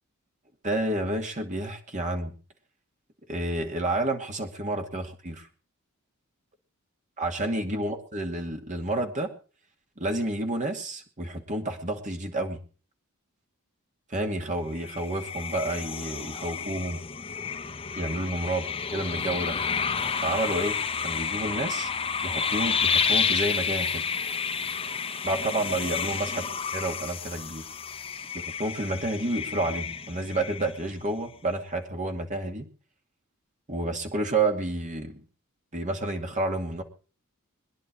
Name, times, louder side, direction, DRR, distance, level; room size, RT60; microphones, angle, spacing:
voice 1, 0.6-2.3 3.3-5.5 7.2-9.3 10.0-12.6 14.1-17.0 18.0-18.6 18.9-19.6 20.2-20.8 21.0-21.9 22.2-24.1 25.2-26.4 26.7-27.6 28.4-32.7 33.7-35.2 35.7-36.8, right 2 dB, 35° right, 4 dB, 2.4 m, -30 dB
sound 1, 14.8-31.0, left 6 dB, 25° left, 0.9 m, -30 dB
21.5 x 10.5 x 4.8 m, 0.39 s
head